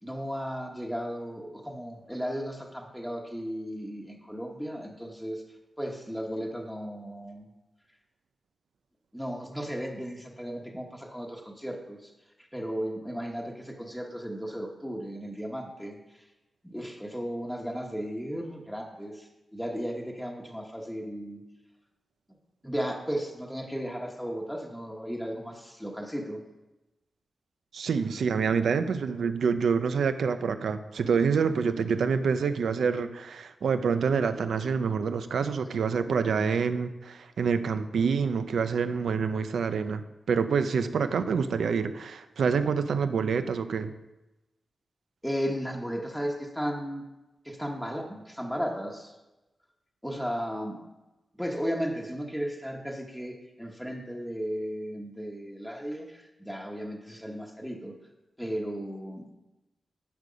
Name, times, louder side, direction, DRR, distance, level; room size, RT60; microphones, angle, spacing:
voice 1, 0.0-5.4 5.8-7.5 9.1-12.1 12.4-16.2 16.6-21.4 22.6-26.4 45.2-47.0 47.4-49.1 50.0-50.8 51.4-57.9 58.4-59.2, equal, ahead, -1 dB, 1.1 m, -35 dB
voice 2, 27.7-40.0 40.3-43.9, right 6 dB, 90° right, 10 dB, 0.6 m, -27 dB
10.5 x 6.6 x 5.2 m, 1.0 s
wide cardioid pair, 150°, 0 cm